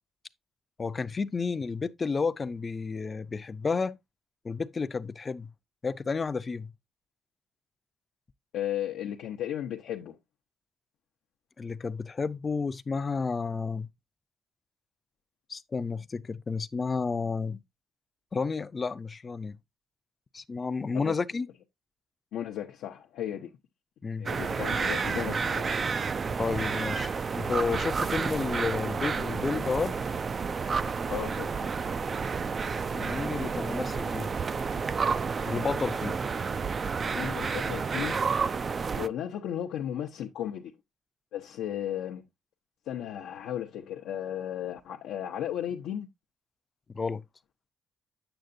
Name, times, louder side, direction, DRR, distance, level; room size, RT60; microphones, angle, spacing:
voice 1, 0.8-4.0 4.4-5.5 5.8-6.7 11.6-13.9 15.5-17.6 18.3-19.6 20.3-21.5 24.0-24.3 26.4-30.0 32.9-34.3 35.5-36.1 46.9-47.2, left 4 dB, 30° left, 0.5 m, -31 dB
voice 2, 8.5-10.2 20.9-21.2 22.3-23.5 24.2-25.8 31.1-31.7 37.0-38.2 38.9-40.7 41.3-42.2 42.9-46.1, left 10 dB, 85° left, 0.6 m, -35 dB
sound 1, 24.3-39.1, right 5 dB, 40° right, 0.4 m, -30 dB
7.9 x 6.6 x 2.6 m
cardioid pair, 90°, 0 cm